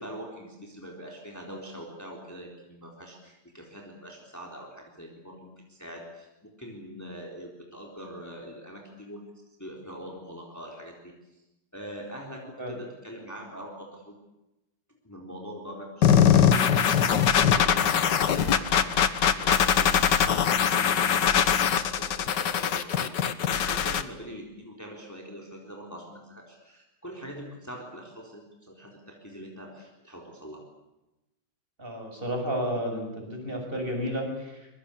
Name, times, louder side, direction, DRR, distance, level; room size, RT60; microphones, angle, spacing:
voice 1, 0.0-9.2 9.6-11.4 11.7-14.2 15.0-17.3 17.6-30.6, equal, 10° left, -1 dB, 3.9 m, -43 dB
voice 2, 12.2-12.8 31.8-34.7, equal, 30° right, 2 dB, 6.7 m, -32 dB
sound 1, 16.0-24.0, left 8 dB, 85° left, 1.8 m, -22 dB
25.5 x 22.5 x 8.6 m, 0.96 s
omnidirectional pair, 1.9 m